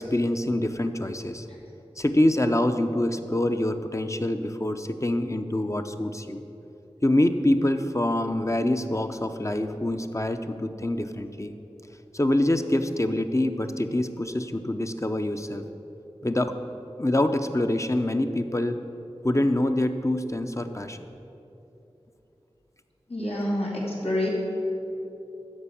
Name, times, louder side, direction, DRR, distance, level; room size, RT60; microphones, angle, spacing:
voice 1, 0.0-1.5 2.0-6.4 7.0-11.5 12.1-15.6 16.2-16.5 17.0-18.8 19.2-21.0, left 1 dB, 30° left, 7 dB, 0.7 m, -25 dB
voice 2, 23.1-24.3, left 1 dB, 80° left, -5 dB, 2.7 m, -27 dB
13.0 x 5.2 x 8.4 m, 3.0 s
wide cardioid pair, 40°, 10 cm